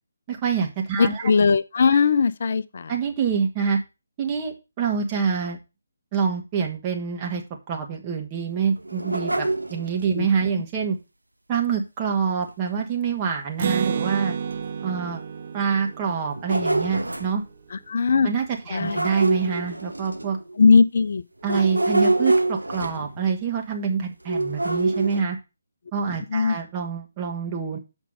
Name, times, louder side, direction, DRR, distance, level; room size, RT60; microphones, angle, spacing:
voice 1, 0.3-1.3 2.9-3.8 4.2-5.6 6.1-7.4 7.7-11.0 11.5-14.4 14.8-15.2 15.5-17.4 18.2-20.4 21.4-25.4 25.9-27.8, right 6 dB, 25° right, 1.8 m, -26 dB
voice 2, 1.0-2.9 10.2-10.3 17.7-18.3 18.7-19.0 20.6-21.2 21.5-21.6 26.3-26.6, left 5 dB, 50° left, 0.6 m, -19 dB
sound 1, 8.8-10.2 12.4-12.5 13.0-13.1 13.8-13.9 14.5-14.6 16.1-17.4 18.7-20.6 21.4-23.3 24.3-25.2, right 2 dB, 85° right, 1.1 m, -25 dB
Acoustic guitar, 13.6-17.3, right 7 dB, 40° right, 0.9 m, -30 dB
7.7 x 5.4 x 5.4 m
figure-of-eight pair, 145°, 0 cm